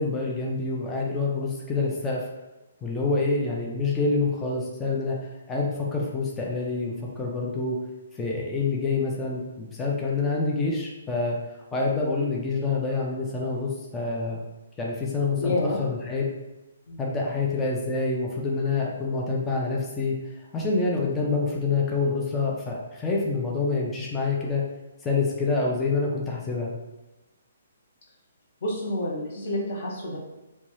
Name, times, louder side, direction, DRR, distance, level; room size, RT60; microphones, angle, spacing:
voice 1, 0.0-2.3 2.8-5.2 5.5-7.8 8.2-11.4 11.7-14.4 14.8-16.3 17.0-20.1 20.5-24.6 25.0-26.7, left 3 dB, 10° left, -3 dB, 0.3 m, -27 dB
voice 2, 15.4-15.8 16.9-17.0 28.6-30.2, left 1 dB, 45° left, -4 dB, 0.9 m, -28 dB
2.7 x 2.2 x 3.0 m, 1.0 s
hypercardioid pair, 165°, 0 cm